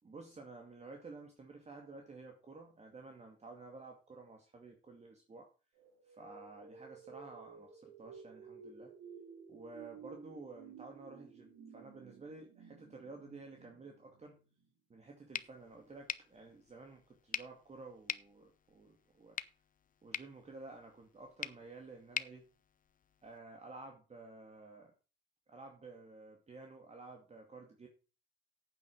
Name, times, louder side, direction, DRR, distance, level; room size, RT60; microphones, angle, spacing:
voice 1, 0.0-5.5 6.0-8.9 9.5-14.4 14.9-19.4 20.0-22.5 23.2-24.9 25.5-27.9, right 3 dB, 35° right, 2 dB, 2.3 m, -52 dB
sound 1, 5.7-14.7, right 6 dB, 85° right, 3.4 m, -55 dB
sound 2, 15.3-23.4, left 8 dB, 45° left, 0.7 m, -46 dB
9.1 x 8.6 x 6.2 m, 0.35 s
cardioid pair, 90°, 20 cm